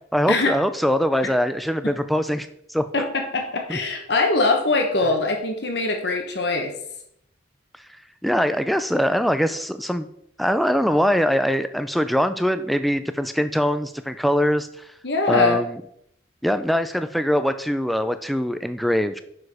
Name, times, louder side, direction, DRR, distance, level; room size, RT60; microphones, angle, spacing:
voice 1, 0.1-3.1 3.7-3.8 8.2-10.1 10.4-14.7 15.3-15.8 16.4-19.2, equal, ahead, 10 dB, 0.3 m, -22 dB
voice 2, 2.9-6.7 15.0-15.6, left 3 dB, 60° left, 3 dB, 1.1 m, -22 dB
6.2 x 4.8 x 4.8 m, 0.71 s
head